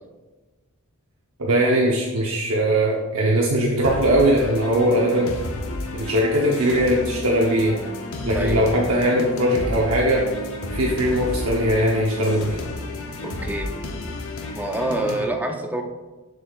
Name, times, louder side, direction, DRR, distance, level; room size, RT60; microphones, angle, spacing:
voice 1, 1.4-5.3 5.9-7.8 8.2-10.3 10.7-12.6, right 1 dB, 65° right, -3 dB, 0.8 m, -20 dB
sound 1, 3.8-15.3, left 2 dB, 65° left, 0.8 m, -31 dB
voice 2, 8.3-8.8 13.2-13.7 14.5-15.8, right 1 dB, 10° right, 3 dB, 0.5 m, -27 dB
6.7 x 6.7 x 2.4 m, 1.2 s
head